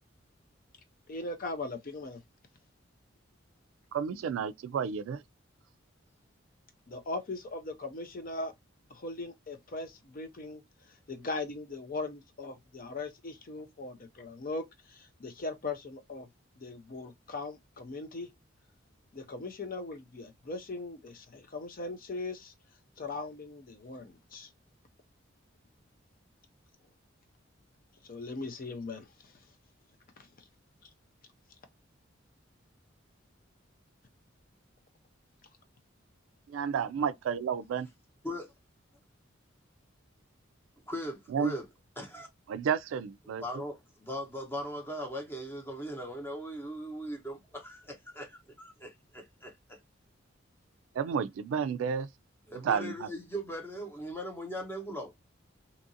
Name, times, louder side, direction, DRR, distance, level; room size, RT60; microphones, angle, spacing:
voice 1, 1.1-2.2 6.9-8.5 8.9-10.6 10.9-16.3 16.6-18.3 19.1-22.5 23.0-24.5 28.0-29.3 30.2-30.3 30.8-30.9, left 3 dB, 45° left, 0.5 m, -39 dB
voice 2, 3.9-5.2 36.5-37.9 41.3-41.5 42.5-43.4 51.0-52.1 52.6-53.1, right 7 dB, 80° right, 0.3 m, -31 dB
voice 3, 40.8-41.7 42.0-42.3 43.4-49.8 52.5-55.3, equal, 10° left, 0.8 m, -39 dB
2.8 x 2.4 x 2.6 m
head